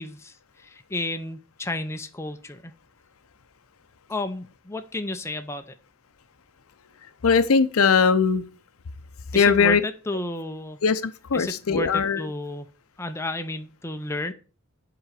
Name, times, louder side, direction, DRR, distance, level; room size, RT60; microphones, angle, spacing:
voice 1, 0.0-2.7 4.1-5.6 9.3-10.8 11.3-12.7 13.0-14.3, left 1 dB, 10° left, 0.5 m, -32 dB
voice 2, 7.2-8.5 9.3-9.8 10.8-12.3, left 5 dB, 85° left, 0.6 m, -20 dB
7.4 x 3.9 x 6.4 m
head